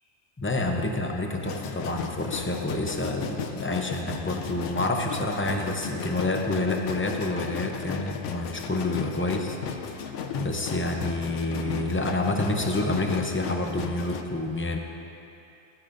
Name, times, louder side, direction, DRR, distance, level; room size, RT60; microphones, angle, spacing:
voice 1, 0.4-9.6 10.3-14.8, left 2 dB, 15° left, 2 dB, 0.5 m, -28 dB
sound 1, 1.4-14.2, left 7 dB, 90° left, 0.9 m, -35 dB
14.0 x 12.5 x 2.6 m, 2.8 s
omnidirectional pair, 1.2 m